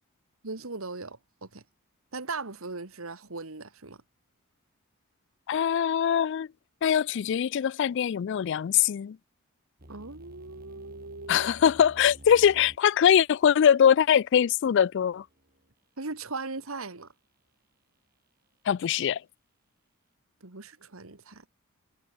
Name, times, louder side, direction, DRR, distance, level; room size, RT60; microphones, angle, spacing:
voice 1, 0.4-1.6 2.1-4.0 9.9-11.5 16.0-17.1 20.4-21.4, right 3 dB, 70° right, 1.9 m, -38 dB
voice 2, 5.5-6.5 6.8-9.2 11.3-15.2 18.7-19.2, left 8 dB, 55° left, 0.3 m, -22 dB
sound 1, 9.8-15.7, right 1 dB, 45° right, 4.7 m, -52 dB
head